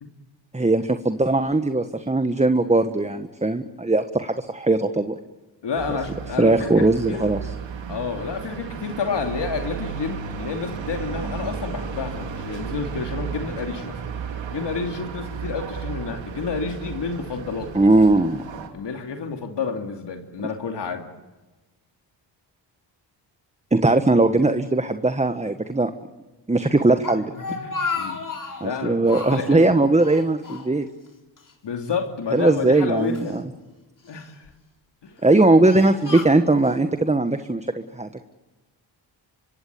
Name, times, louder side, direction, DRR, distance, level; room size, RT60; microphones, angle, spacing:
voice 1, 0.5-5.1 6.4-7.5 17.7-18.4 23.7-25.9 26.5-27.3 28.6-30.8 32.3-33.4 35.2-38.2, right 2 dB, 15° right, 9 dB, 1.4 m, -19 dB
voice 2, 5.6-7.5 7.9-14.0 14.5-17.7 18.7-21.1 27.1-28.2 28.6-29.9 31.6-33.4 34.1-34.4 35.0-35.1, left 5 dB, 70° left, 4 dB, 2.9 m, -30 dB
sound 1, 5.7-18.7, right 6 dB, 85° right, 2.9 m, -34 dB
Speech, 26.8-28.7 29.0-29.6 30.0-31.1 31.4-31.5 32.3-33.4 34.0-34.5 35.1-36.8, left 4 dB, 45° left, 4.3 m, -33 dB
25.0 x 24.0 x 8.6 m, 1.1 s
cardioid pair, 65°, 44 cm